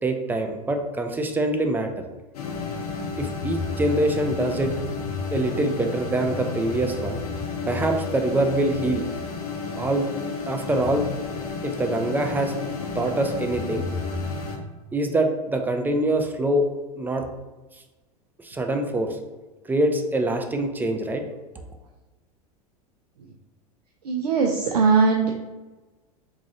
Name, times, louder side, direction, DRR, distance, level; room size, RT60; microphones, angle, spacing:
voice 1, 0.0-1.9 3.2-4.7 5.3-7.2 7.7-9.1 9.7-10.1 10.5-11.1 11.6-12.5 12.9-13.9 14.9-16.7 17.0-17.3 18.4-19.2 19.6-21.2, right 1 dB, 10° right, 5 dB, 0.4 m, -24 dB
sound 1, 2.3-14.6, left 4 dB, 75° left, 0.7 m, -31 dB
voice 2, 24.0-25.3, right 5 dB, 85° right, 1 dB, 0.4 m, -20 dB
3.8 x 3.0 x 2.7 m, 1.2 s
hypercardioid pair, 90°, 20 cm